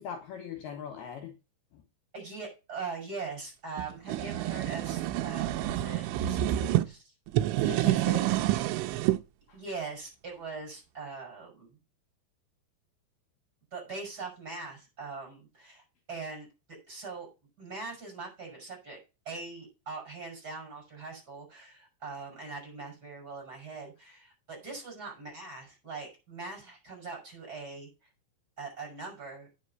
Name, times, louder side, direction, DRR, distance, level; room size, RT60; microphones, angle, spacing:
voice 1, 0.0-1.3 1.7-1.8 7.7-8.3 9.5-9.6, left 7 dB, 70° left, 4 dB, 2.9 m, -40 dB
voice 2, 2.1-7.1 9.5-11.7 13.7-16.5 16.9-17.3 17.6-19.0 19.2-27.9 28.6-29.5, right 4 dB, 20° right, 0 dB, 6.6 m, -41 dB
sound 1, 3.8-6.9 7.3-9.2, right 14 dB, 90° right, 3.1 m, -28 dB
9.5 x 6.8 x 5.6 m, 0.29 s
omnidirectional pair, 5.3 m